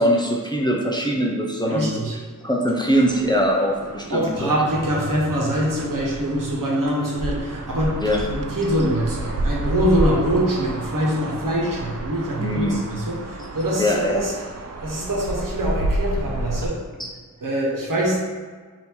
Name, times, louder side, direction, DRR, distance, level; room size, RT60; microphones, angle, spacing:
voice 1, 0.0-1.9 2.4-4.5 8.0-8.3 12.4-12.8 13.8-14.1 17.0-17.1, equal, 15° left, -1 dB, 0.5 m, -22 dB
voice 2, 1.6-2.2 4.1-14.3 14.8-16.8 17.4-18.2, equal, 70° right, -4 dB, 1.1 m, -24 dB
sound 1, 2.9-16.7, right 2 dB, 50° right, 0.4 m, -30 dB
3.6 x 2.8 x 4.4 m, 1.5 s
wide cardioid pair, 85°, 34 cm